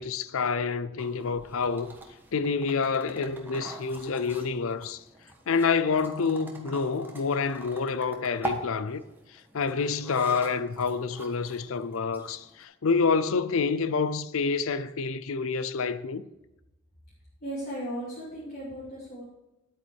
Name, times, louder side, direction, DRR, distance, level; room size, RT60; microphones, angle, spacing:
voice 1, 0.0-1.9 2.3-5.0 5.5-9.0 9.5-16.2, left 5 dB, 65° left, 0.5 m, -28 dB
sound 1, 1.0-12.6, right 2 dB, 10° right, 1.4 m, -43 dB
voice 2, 17.4-19.2, right 1 dB, 45° left, 3.0 m, -36 dB
10.0 x 8.7 x 4.6 m
head